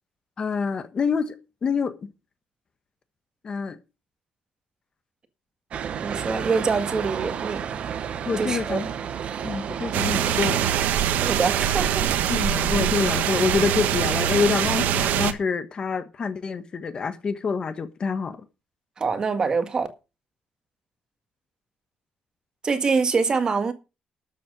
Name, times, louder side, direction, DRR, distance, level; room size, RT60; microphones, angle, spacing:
voice 1, 0.4-1.4 1.6-2.1 3.4-3.8 8.3-8.8 9.4-10.7 12.3-18.4, left 5 dB, 30° left, 1.3 m, -26 dB
sound 1, 5.7-10.9, right 8 dB, 45° right, 1.3 m, -31 dB
voice 2, 6.0-7.7 8.4-8.8 11.1-12.1 19.0-19.9 22.6-23.7, right 4 dB, 30° right, 1.7 m, -25 dB
sound 2, 9.9-15.3, right 10 dB, 80° right, 1.3 m, -23 dB
13.0 x 7.7 x 5.2 m
cardioid pair, 165°, 3 cm